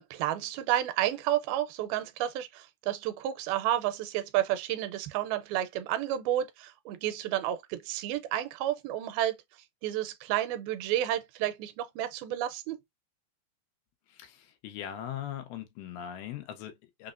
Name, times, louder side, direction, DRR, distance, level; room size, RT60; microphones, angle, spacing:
voice 1, 0.0-9.4 9.8-12.8, right 12 dB, 85° right, 2.3 m, -31 dB
voice 2, 14.1-17.1, left 10 dB, 85° left, 2.6 m, -40 dB
5.8 x 2.1 x 2.4 m
omnidirectional pair, 4.3 m